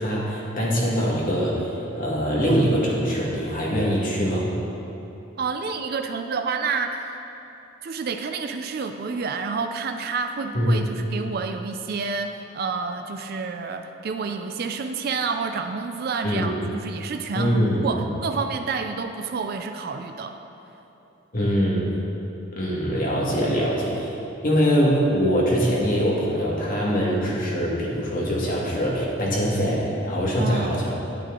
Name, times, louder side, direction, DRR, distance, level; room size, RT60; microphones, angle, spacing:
voice 1, 0.0-1.7 1.9-4.5 10.5-10.7 16.2-16.5 17.3-17.8 21.3-21.9 22.6-24.1 24.4-30.9, equal, 40° left, -4 dB, 1.6 m, -23 dB
voice 2, 5.4-7.1 7.8-20.4 30.4-30.8, right 4 dB, 45° right, 6 dB, 0.4 m, -29 dB
9.2 x 8.4 x 3.7 m, 2.9 s
head